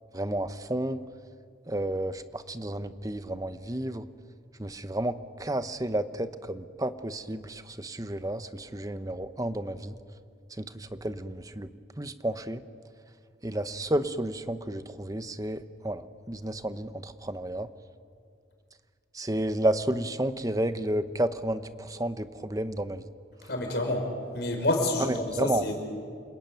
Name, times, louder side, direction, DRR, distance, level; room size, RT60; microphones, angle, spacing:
voice 1, 0.1-1.0 1.7-4.1 4.6-10.0 10.6-11.7 12.0-12.6 13.4-16.0 16.3-17.7 19.1-23.0 25.0-25.7, right 1 dB, 20° right, 11 dB, 0.9 m, -31 dB
voice 2, 23.5-24.1 24.3-25.7, left 1 dB, 60° left, 3 dB, 5.3 m, -28 dB
29.0 x 21.0 x 9.3 m, 2.2 s
head